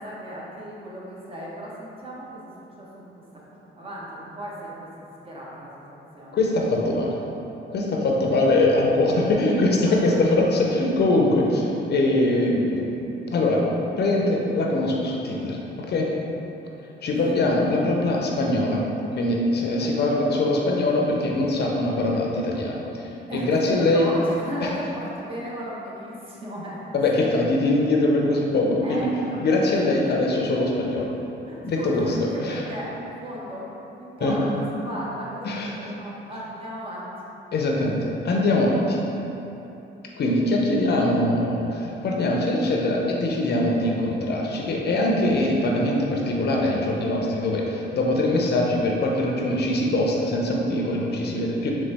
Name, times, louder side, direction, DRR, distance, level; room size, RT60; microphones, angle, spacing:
voice 1, 0.0-2.5 2.8-3.1 3.7-6.4 9.9-10.2 17.5-17.7 19.8-20.3 23.3-26.8 27.1-27.3 28.8-30.1 31.5-33.7 34.0-37.1, equal, 30° right, -6 dB, 1.0 m, -36 dB
voice 2, 6.3-7.2 7.7-13.0 13.3-13.6 14.0-15.6 15.9-16.1 17.0-18.8 19.1-22.8 23.3-24.1 24.6-24.7 26.9-29.1 29.4-31.1 31.6-32.6 34.2-34.5 35.4-35.7 37.5-39.0 40.2-51.7, left 2 dB, 55° left, -1 dB, 0.6 m, -22 dB
4.0 x 3.2 x 3.4 m, 3.0 s
cardioid pair, 90°, 20 cm